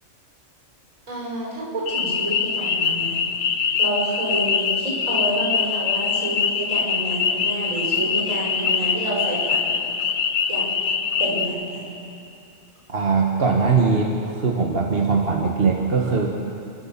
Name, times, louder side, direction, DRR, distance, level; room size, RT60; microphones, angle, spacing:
voice 1, 1.1-9.8 10.5-10.7 11.2-12.0, right 1 dB, 80° right, -6 dB, 7.0 m, -29 dB
sound 1, 1.9-11.5, left 6 dB, 65° left, 1.2 m, -23 dB
voice 2, 12.9-16.3, right 4 dB, 45° right, 0 dB, 1.7 m, -21 dB
28.0 x 12.5 x 7.4 m, 2.7 s
omnidirectional pair, 1.3 m